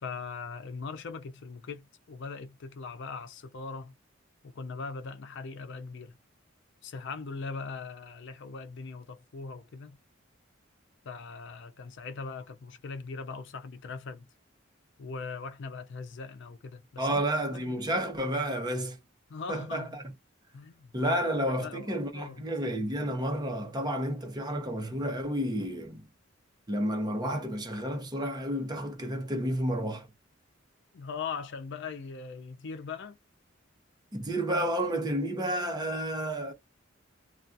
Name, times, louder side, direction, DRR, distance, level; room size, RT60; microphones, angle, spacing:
voice 1, 0.0-3.9 4.4-6.2 6.8-10.0 11.0-14.3 15.0-17.2 17.5-17.8 19.3-20.0 20.5-21.1 21.5-22.5 30.9-33.2, left 4 dB, 65° left, 0.5 m, -40 dB
voice 2, 17.0-19.0 19.5-20.0 20.9-26.0 26.7-30.1 34.1-36.5, right 1 dB, 20° right, 0.7 m, -31 dB
2.3 x 2.3 x 2.5 m
head